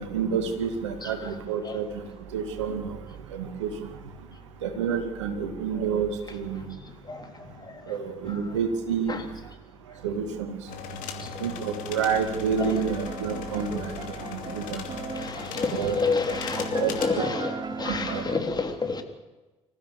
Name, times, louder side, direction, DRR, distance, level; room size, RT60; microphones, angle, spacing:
voice 1, 0.0-1.9 2.3-3.0 3.3-3.7 4.6-6.7 7.9-9.2 10.0-10.6 11.4-13.9 14.3-14.8 15.7-16.0 16.3-16.4 16.8-17.2 17.9-18.2, right 6 dB, 80° right, 2.2 m, -29 dB
voice 2, 6.7-7.9 9.1-9.2 11.2-11.4 12.6-12.7 13.7-13.8 15.1-19.0, left 4 dB, 25° left, 3.4 m, -30 dB
sound 1, 10.7-17.1, left 6 dB, 65° left, 2.6 m, -38 dB
sound 2, 12.6-18.4, right 4 dB, 30° right, 2.7 m, -37 dB
25.0 x 15.0 x 7.0 m
figure-of-eight pair, 50°, 15 cm